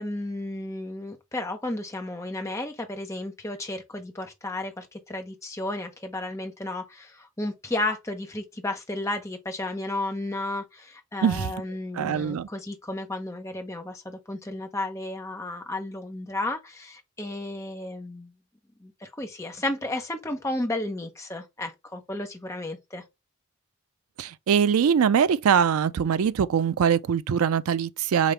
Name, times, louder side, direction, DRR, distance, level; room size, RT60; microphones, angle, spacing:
voice 1, 0.0-18.3 18.8-23.0, left 2 dB, 15° left, 0.8 m, -33 dB
voice 2, 12.0-12.5 24.2-28.3, right 7 dB, 75° right, 0.4 m, -22 dB
5.0 x 2.9 x 3.2 m
head